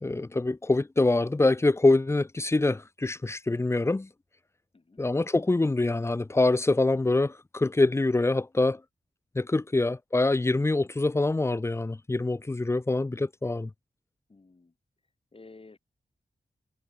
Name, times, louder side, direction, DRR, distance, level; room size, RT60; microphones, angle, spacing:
voice 1, 0.0-4.1 5.0-8.8 9.4-13.7, left 2 dB, 15° left, 0.4 m, -25 dB
voice 2, 14.3-14.7 15.3-15.8, left 3 dB, 35° left, 2.2 m, -52 dB
cardioid pair, 60°, 16 cm